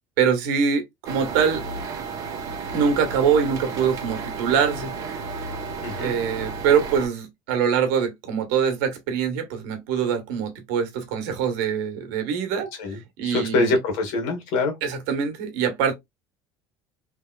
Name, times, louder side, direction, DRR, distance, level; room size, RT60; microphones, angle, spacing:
voice 1, 0.2-1.6 2.7-4.9 6.0-12.7 13.2-13.7 14.8-15.9, right 7 dB, 85° right, 1.2 m, -23 dB
sound 1, 1.1-7.1, right 4 dB, 35° right, 0.8 m, -33 dB
voice 2, 5.8-6.1 12.8-14.8, left 3 dB, 80° left, 1.7 m, -24 dB
3.4 x 3.0 x 2.3 m
cardioid pair, 155°, 9 cm